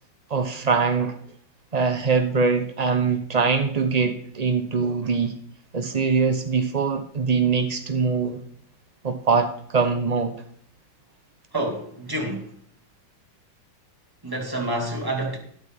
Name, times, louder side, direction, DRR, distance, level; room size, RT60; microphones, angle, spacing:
voice 1, 0.3-1.2 1.7-5.4 5.7-8.4 9.0-10.3, right 5 dB, 90° right, 0.3 m, -23 dB
voice 2, 11.5-12.5 14.2-15.4, right 1 dB, 10° right, 2.2 m, -28 dB
12.5 x 12.0 x 3.6 m
omnidirectional pair, 2.2 m